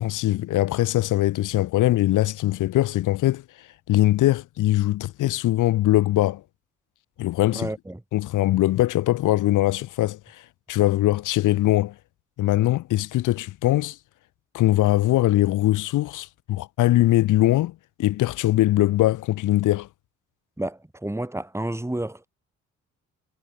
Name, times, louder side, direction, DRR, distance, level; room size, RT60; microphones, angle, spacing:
voice 1, 0.0-3.4 3.9-6.4 7.2-7.7 8.1-10.4 10.7-11.9 12.4-14.0 14.5-17.7 18.0-19.9, left 15 dB, 85° left, 2.0 m, -21 dB
voice 2, 7.5-8.0 20.6-22.3, right 1 dB, 10° right, 4.9 m, -30 dB
cardioid pair, 90°, 30 cm